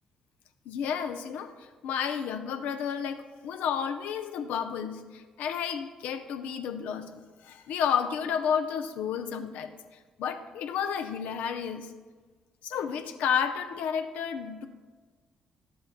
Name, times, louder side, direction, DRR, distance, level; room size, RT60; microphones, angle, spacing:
voice 1, 0.7-9.7 10.2-11.9 12.6-14.7, left 7 dB, 75° left, 7 dB, 0.6 m, -31 dB
12.0 x 7.8 x 2.2 m, 1.4 s
hypercardioid pair, 50°, 3 cm